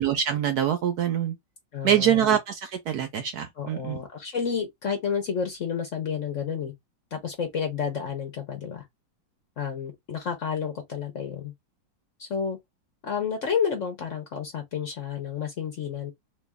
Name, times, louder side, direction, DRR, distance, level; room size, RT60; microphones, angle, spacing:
voice 1, 0.0-1.3 1.8-4.0, right 9 dB, 70° right, 1.0 m, -24 dB
voice 2, 1.7-2.2 3.6-6.7 7.1-8.9 9.6-11.5 12.2-12.6 13.0-16.1, left 7 dB, 55° left, 0.9 m, -30 dB
3.0 x 2.6 x 3.4 m
omnidirectional pair, 2.1 m